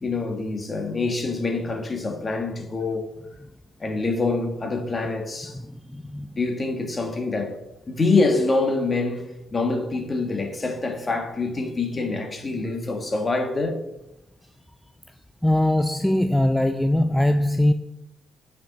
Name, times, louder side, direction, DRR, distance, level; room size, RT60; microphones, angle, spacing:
voice 1, 0.0-3.1 3.8-5.6 6.3-7.6 7.9-13.8, left 3 dB, 30° left, 1.6 m, -25 dB
voice 2, 5.5-6.4 15.4-17.7, left 1 dB, 5° left, 0.3 m, -21 dB
9.2 x 5.2 x 3.9 m
cardioid pair, 90°, 0 cm